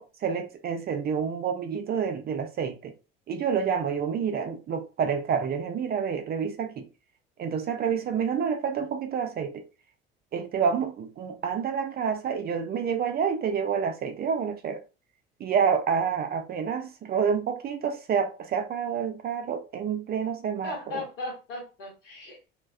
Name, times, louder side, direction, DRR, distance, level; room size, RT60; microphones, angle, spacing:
voice 1, 0.0-2.9 3.3-6.9 7.4-9.6 10.3-14.8 15.4-21.0, right 7 dB, 35° right, 0.4 m, -28 dB
voice 2, 20.6-22.5, left 2 dB, 70° left, 1.3 m, -37 dB
2.4 x 2.2 x 2.2 m
figure-of-eight pair, 60°, 30 cm